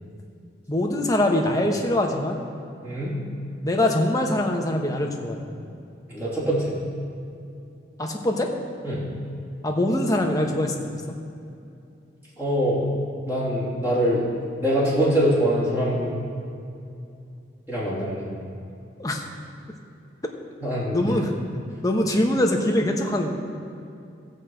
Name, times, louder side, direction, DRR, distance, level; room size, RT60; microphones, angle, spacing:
voice 1, 0.7-2.4 3.6-5.4 8.0-8.5 9.6-10.8 19.0-19.2 20.9-21.3 21.8-23.3, left 1 dB, 20° left, 2 dB, 1.1 m, -23 dB
voice 2, 2.8-3.1 6.1-6.7 8.8-9.0 12.4-12.8 13.2-14.2 14.6-16.2 17.7-18.2 20.6-21.1, equal, 10° right, -9 dB, 3.0 m, -23 dB
16.0 x 5.4 x 7.8 m, 2.6 s
head